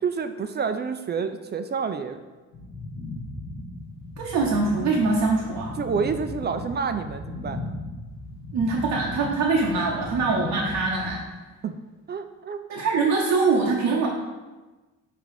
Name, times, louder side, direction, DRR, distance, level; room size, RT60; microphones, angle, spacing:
voice 1, 0.0-2.2 5.8-7.8 11.6-11.8 12.1-12.6, right 5 dB, 35° right, 8 dB, 0.4 m, -28 dB
sound 1, 2.5-11.1, left 2 dB, 70° left, 1.3 m, -36 dB
voice 2, 4.2-5.8 8.5-11.2 12.7-14.1, right 3 dB, 90° right, -3 dB, 0.9 m, -23 dB
5.2 x 3.8 x 4.8 m, 1.2 s
cardioid pair, 90°, 30 cm